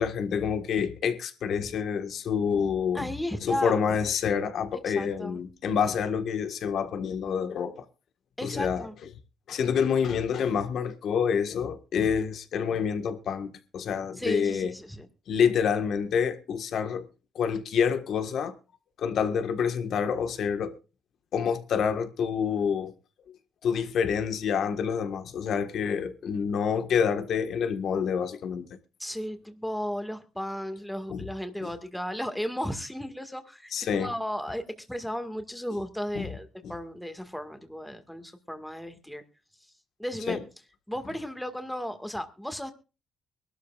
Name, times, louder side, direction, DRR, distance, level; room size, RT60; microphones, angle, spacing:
voice 1, 0.0-3.1 3.4-7.8 8.4-8.9 9.5-14.7 15.3-17.1 17.3-18.5 19.0-20.7 21.3-22.9 23.6-28.7 31.1-31.3 31.6-31.7 33.7-34.1 36.1-36.3 36.6-36.7 40.3-40.4, left 7 dB, 70° left, 1.6 m, -27 dB
voice 2, 2.9-3.8 4.9-5.4 8.4-8.9 14.2-15.1 29.0-39.2 40.0-40.4 40.9-42.7, equal, 5° left, 1.9 m, -34 dB
23.5 x 12.5 x 2.5 m
cardioid pair, 90°, 0 cm